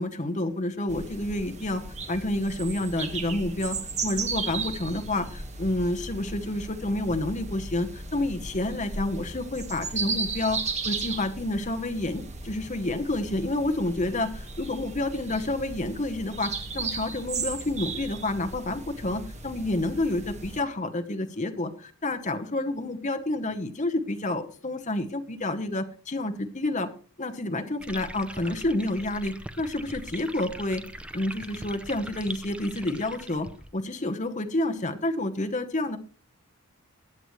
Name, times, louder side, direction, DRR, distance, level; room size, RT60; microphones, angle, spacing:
voice 1, 0.0-1.8 2.1-26.9 27.2-30.8 31.1-33.5 33.7-36.0, left 1 dB, 35° left, 6 dB, 1.0 m, -29 dB
sound 1, 0.9-20.6, right 4 dB, 30° right, 1.4 m, -36 dB
sound 2, 27.8-33.7, right 1 dB, 5° right, 0.5 m, -41 dB
20.5 x 8.0 x 3.1 m, 0.41 s
head